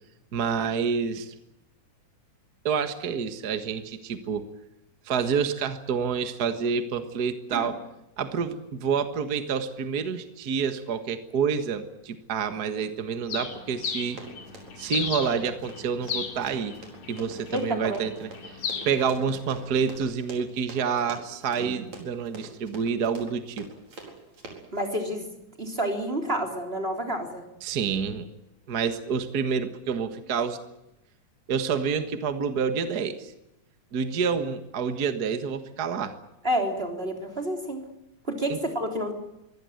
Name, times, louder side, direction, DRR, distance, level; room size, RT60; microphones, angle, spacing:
voice 1, 0.3-1.3 2.6-4.5 5.1-7.8 8.2-14.2 14.8-16.7 17.1-18.6 18.9-23.7 27.6-28.3 28.7-30.6 31.5-33.3 33.9-36.2 38.5-38.6, right 6 dB, 40° right, 9 dB, 1.7 m, -28 dB
Bird, 13.3-20.0, left 6 dB, 70° left, 3.8 m, -36 dB
Run, 14.1-24.8, right 3 dB, 65° right, 5.7 m, -44 dB
voice 2, 17.5-18.0 24.7-25.3 25.6-27.4 36.4-37.9 38.3-39.1, equal, 20° right, 4 dB, 3.7 m, -29 dB
24.0 x 17.0 x 9.4 m, 0.88 s
omnidirectional pair, 3.3 m